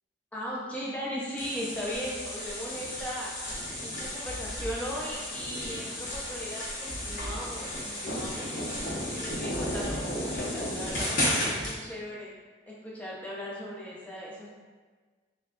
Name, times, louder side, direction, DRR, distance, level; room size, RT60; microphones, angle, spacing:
voice 1, 0.3-3.3 3.8-8.8 9.1-12.3 12.7-14.5, equal, 10° left, -6 dB, 0.5 m, -38 dB
sound 1, 1.4-11.8, left 1 dB, 45° left, 0.9 m, -33 dB
3.2 x 2.3 x 3.6 m, 1.4 s
head